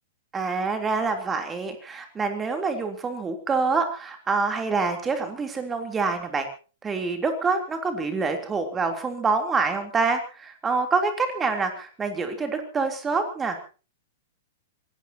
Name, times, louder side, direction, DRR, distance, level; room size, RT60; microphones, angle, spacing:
voice 1, 0.3-6.5 6.8-13.6, right 4 dB, 15° right, 6 dB, 3.4 m, -26 dB
26.5 x 18.0 x 2.9 m, 0.36 s
figure-of-eight pair, 105°, 0 cm